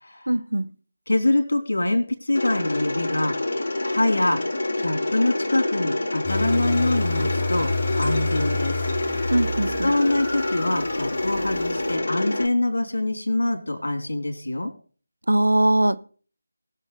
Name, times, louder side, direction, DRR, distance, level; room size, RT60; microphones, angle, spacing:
voice 1, 0.3-0.7 9.3-9.9 15.3-16.0, right 1 dB, 80° right, 13 dB, 1.0 m, -21 dB
voice 2, 1.1-4.4 4.8-8.8 9.8-14.7, left 2 dB, 70° left, 5 dB, 3.3 m, -24 dB
Mechanisms, 2.3-12.5, left 2 dB, 50° left, 3.2 m, -27 dB
sound 1, 6.2-12.0, left 2 dB, 25° left, 2.5 m, -29 dB
19.5 x 7.1 x 4.1 m, 0.41 s
figure-of-eight pair, 160°, 0 cm